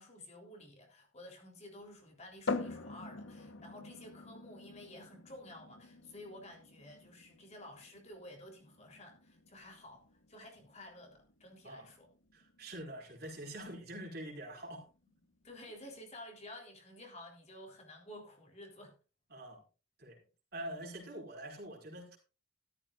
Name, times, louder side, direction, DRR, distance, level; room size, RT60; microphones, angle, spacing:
voice 1, 0.0-12.1 15.4-18.9, left 1 dB, 30° left, 3.7 m, -52 dB
sound 1, 2.5-16.0, left 3 dB, 70° left, 1.3 m, -46 dB
voice 2, 12.3-14.8 19.3-19.6 20.0-20.2 20.5-22.2, right 1 dB, 50° right, 4.9 m, -45 dB
14.0 x 13.5 x 2.5 m
head